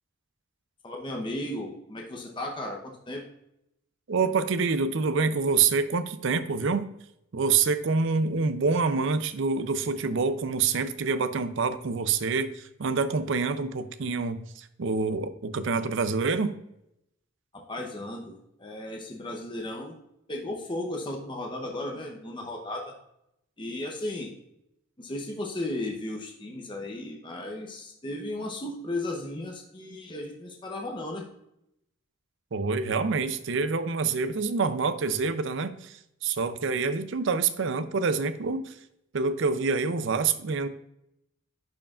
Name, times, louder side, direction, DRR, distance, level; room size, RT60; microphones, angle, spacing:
voice 1, 0.8-3.2 17.7-19.9 20.3-22.9 23.6-24.3 25.0-31.2, left 1 dB, 25° left, 0 dB, 0.8 m, -35 dB
voice 2, 4.1-6.9 7.3-16.5 32.5-38.8 39.1-40.7, right 4 dB, 60° right, 11 dB, 0.5 m, -26 dB
10.5 x 4.7 x 2.4 m, 0.79 s
head